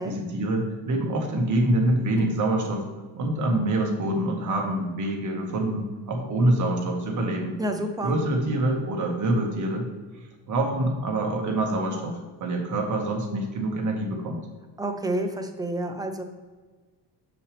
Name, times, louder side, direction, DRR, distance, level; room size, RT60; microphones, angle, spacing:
voice 1, 0.0-2.8 3.1-7.5 8.0-9.9 10.5-14.4, right 1 dB, 45° right, 1 dB, 1.6 m, -25 dB
voice 2, 7.6-8.2 14.8-16.2, right 1 dB, 10° right, 5 dB, 0.7 m, -29 dB
7.0 x 6.5 x 3.3 m, 1.3 s
cardioid pair, 135°, 42 cm